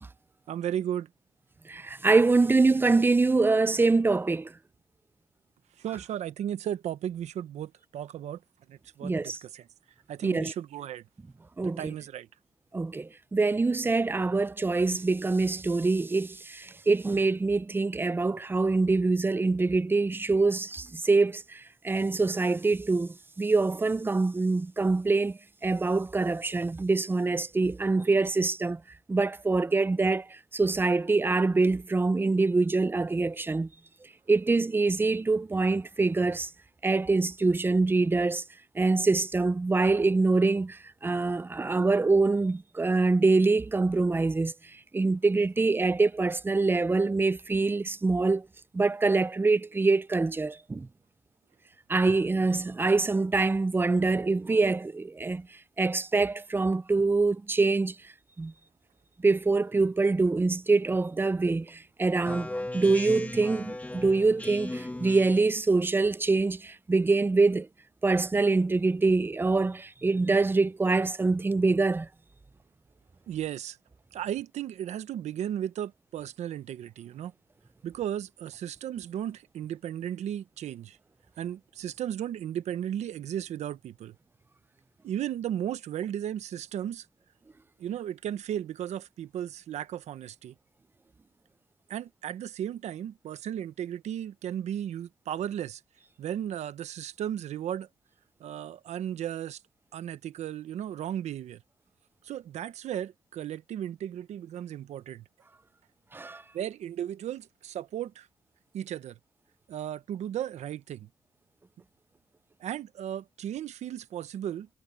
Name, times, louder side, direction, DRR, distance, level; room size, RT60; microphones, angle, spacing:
voice 1, 0.5-1.1 5.8-8.4 8.7-9.7 10.1-11.0 11.6-12.3 73.3-73.8 74.1-77.3 77.8-81.0 81.4-84.1 85.0-87.1 87.8-90.5 91.9-95.8 96.2-97.9 98.4-99.6 99.9-101.6 102.2-105.2 106.5-108.3 108.7-109.2 109.7-111.1 112.6-114.7, right 10 dB, 85° right, 1.0 m, -35 dB
voice 2, 1.7-4.5 9.0-9.4 10.2-10.5 11.6-11.9 12.7-28.8 29.1-33.7 34.3-36.5 36.8-38.4 38.8-44.5 44.9-48.5 48.7-50.9 51.9-55.5 55.8-58.0 58.4-58.5 59.2-62.5 62.7-67.7 68.0-72.1 106.1-106.4, right 3 dB, 20° right, 0.5 m, -25 dB
Speech synthesizer, 62.2-65.6, left 1 dB, 15° left, 1.7 m, -37 dB
cardioid pair, 95°, 11 cm